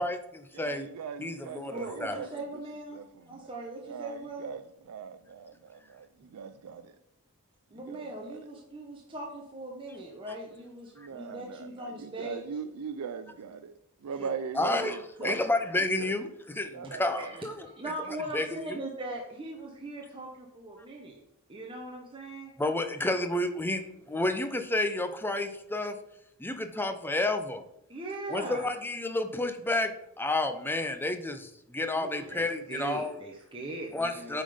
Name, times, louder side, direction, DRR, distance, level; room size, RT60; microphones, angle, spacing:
voice 1, 0.0-0.9 1.2-2.2 11.0-11.1 14.5-17.7 18.3-18.8 22.6-26.0 26.4-27.6 28.3-33.2 33.9-34.4, left 2 dB, 10° left, 0.5 m, -31 dB
voice 2, 0.5-2.6 2.9-3.5 3.9-6.9 7.9-8.4 10.9-15.4 16.0-16.2 16.7-17.3, right 6 dB, 80° right, 0.4 m, -40 dB
voice 3, 1.7-4.6 6.2-6.3 7.7-12.5 14.2-14.9 15.2-15.3 17.2-21.2 21.5-22.5 27.9-28.7 31.9-34.4, right 2 dB, 25° right, 1.0 m, -40 dB
8.8 x 3.9 x 5.0 m
head